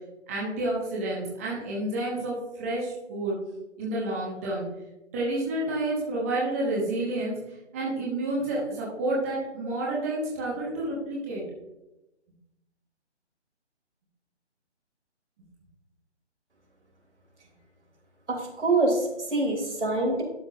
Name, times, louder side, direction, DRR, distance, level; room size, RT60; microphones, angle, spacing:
voice 1, 0.3-3.4 3.8-4.6 5.1-7.4 7.7-11.4, right 1 dB, 15° right, -5 dB, 0.9 m, -29 dB
voice 2, 18.3-20.2, right 2 dB, 75° right, 1 dB, 2.9 m, -25 dB
11.5 x 5.7 x 2.7 m, 0.97 s
figure-of-eight pair, 160°, 35 cm